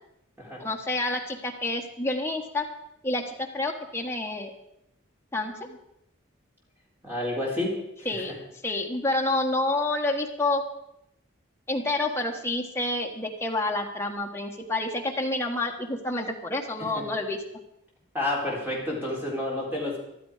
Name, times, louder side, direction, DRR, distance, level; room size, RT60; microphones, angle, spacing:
voice 1, 0.6-2.6 3.0-4.5 5.3-5.8 8.0-8.3 8.6-10.6 11.7-17.4, left 2 dB, 15° left, 1 dB, 1.4 m, -28 dB
voice 2, 7.0-8.4 16.8-17.0 18.1-20.0, left 1 dB, 10° right, -3 dB, 4.0 m, -30 dB
14.0 x 12.0 x 5.0 m, 0.82 s
head